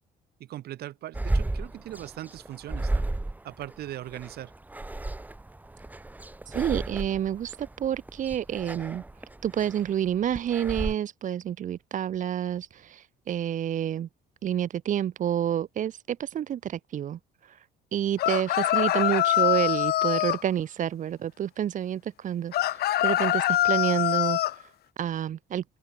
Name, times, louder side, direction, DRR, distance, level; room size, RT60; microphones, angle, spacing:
voice 1, 0.4-3.1 3.4-4.5, right 13 dB, 70° right, 2.8 m, -39 dB
sound 1, 1.1-10.9, right 2 dB, 10° right, 1.4 m, -33 dB
voice 2, 6.5-9.0 9.4-14.1 14.4-17.7 17.9-24.7 25.0-25.6, right 10 dB, 50° right, 1.0 m, -29 dB
sound 2, 18.2-20.4 22.5-24.5, left 14 dB, 70° left, 1.7 m, -24 dB
open air
cardioid pair, 110°, 17 cm